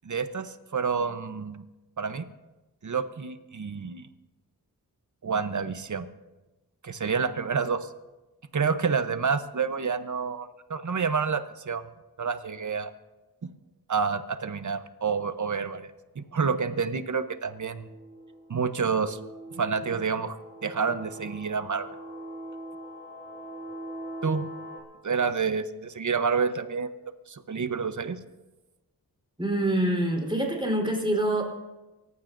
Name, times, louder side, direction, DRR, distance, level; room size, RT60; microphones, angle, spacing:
voice 1, 0.0-1.6 2.0-2.2 2.8-4.1 5.2-6.1 6.8-7.9 8.5-11.9 12.2-12.9 13.9-15.9 16.2-17.9 18.5-19.2 19.5-21.9 24.2-24.5 25.0-28.2, right 5 dB, 50° right, 11 dB, 0.9 m, -29 dB
sound 1, 17.4-24.8, right 1 dB, 50° left, 5.6 m, -42 dB
voice 2, 29.4-31.4, right 1 dB, 15° right, 0 dB, 3.9 m, -25 dB
28.5 x 15.0 x 2.6 m, 1.1 s
wide cardioid pair, 75°, 38 cm